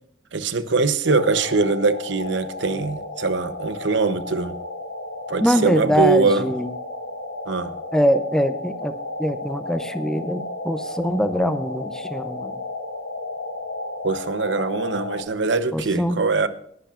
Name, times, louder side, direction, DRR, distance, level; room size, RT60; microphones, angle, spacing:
voice 1, 0.3-4.5 5.3-6.5 7.5-7.7 14.0-16.5, right 4 dB, 70° right, 0.8 m, -22 dB
sound 1, 1.0-15.2, left 2 dB, 90° left, 4.0 m, -33 dB
voice 2, 5.4-6.7 7.9-8.9 9.2-12.5 15.7-16.2, equal, 5° left, 0.5 m, -23 dB
18.5 x 11.5 x 2.4 m
head